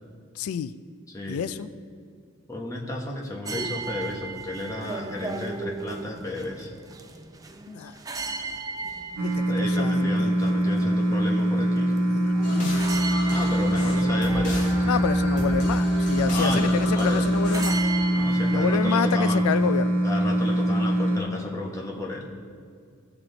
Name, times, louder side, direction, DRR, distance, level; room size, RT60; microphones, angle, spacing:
voice 1, 0.4-0.7 1.3-1.7 7.7-8.0 9.2-10.4 12.0-12.9 13.7-13.9 14.8-17.7 18.5-20.0, left 7 dB, 90° left, 15 dB, 0.3 m, -29 dB
voice 2, 1.1-1.5 2.5-6.7 9.4-11.9 13.2-14.9 16.3-17.3 18.1-19.4 20.0-22.3, left 1 dB, 15° left, -1 dB, 1.2 m, -32 dB
sound 1, 3.5-19.8, right 3 dB, 15° right, 0.4 m, -37 dB
sound 2, 9.2-21.2, right 1 dB, 90° right, 1.0 m, -23 dB
sound 3, 12.4-17.8, left 1 dB, 35° left, 1.7 m, -34 dB
16.0 x 6.0 x 3.9 m, 2.2 s
head